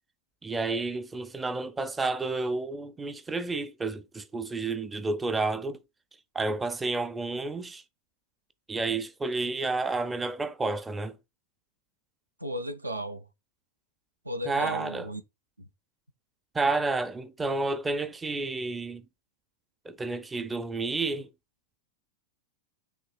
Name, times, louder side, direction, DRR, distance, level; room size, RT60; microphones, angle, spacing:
voice 1, 0.4-5.8 6.3-7.8 8.7-11.2 14.5-15.1 16.5-19.0 19.8-21.3, right 3 dB, 15° right, 0.4 m, -30 dB
voice 2, 12.4-13.2 14.3-15.2, equal, 85° right, 0.4 m, -34 dB
5.7 x 2.9 x 2.3 m
figure-of-eight pair, 90°, 0 cm